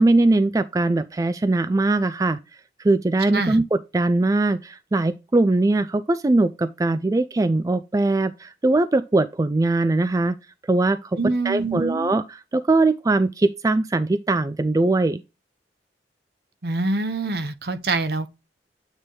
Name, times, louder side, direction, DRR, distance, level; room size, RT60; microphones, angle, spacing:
voice 1, 0.0-2.4 2.8-10.3 10.7-11.2 11.4-15.2, right 2 dB, 20° right, 0.3 m, -21 dB
voice 2, 11.2-12.1 16.6-18.3, right 3 dB, 60° right, 0.9 m, -25 dB
8.9 x 3.3 x 3.9 m
head